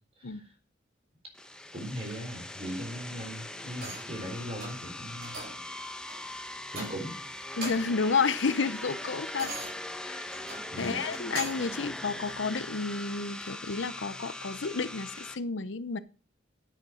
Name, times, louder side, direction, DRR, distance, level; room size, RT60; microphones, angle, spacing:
sound 1, 1.3-15.4, left 1 dB, 5° left, 1.0 m, -41 dB
voice 1, 1.7-5.4 6.7-7.2 10.7-11.0, equal, 35° right, 4.1 m, -39 dB
sound 2, 3.7-4.2 4.6-4.9 5.2-5.7 6.1-6.2 6.7-7.2 7.5-8.0 8.4-11.8 12.3-12.4, right 2 dB, 55° right, 5.1 m, -42 dB
voice 2, 7.6-9.5 10.1-10.4 10.8-16.0, left 4 dB, 85° left, 0.8 m, -31 dB
10.5 x 8.8 x 6.3 m
head